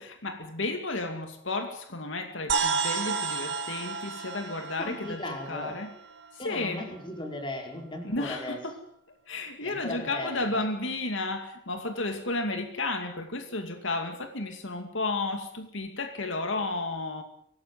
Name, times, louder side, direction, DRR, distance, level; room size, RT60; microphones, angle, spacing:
voice 1, 0.0-5.9 6.4-6.8 8.0-8.8 9.3-17.2, left 2 dB, 75° left, 6 dB, 2.4 m, -32 dB
sound 1, 2.5-6.3, right 5 dB, 70° right, 4.9 m, -31 dB
voice 2, 4.8-5.8 6.4-8.6 9.6-10.6, left 1 dB, 25° left, 2 dB, 4.8 m, -37 dB
24.5 x 18.0 x 7.6 m, 0.69 s
head